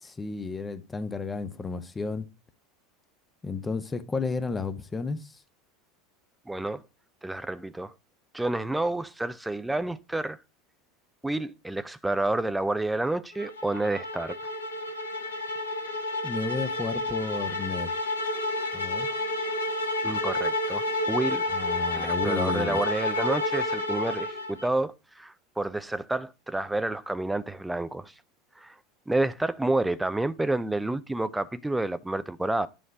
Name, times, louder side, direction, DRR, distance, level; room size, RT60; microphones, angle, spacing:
voice 1, 0.0-2.3 3.4-5.3 16.2-17.9 18.7-19.1 21.5-22.8, left 4 dB, 15° left, 0.8 m, -32 dB
voice 2, 6.5-6.8 7.2-7.9 8.3-10.4 11.2-14.4 20.0-21.4 21.9-28.1 28.6-28.8 29.1-32.7, right 2 dB, 5° right, 0.4 m, -29 dB
sound 1, 13.4-24.7, left 1 dB, 75° left, 1.1 m, -30 dB
9.1 x 3.2 x 5.0 m
figure-of-eight pair, 75°, 0 cm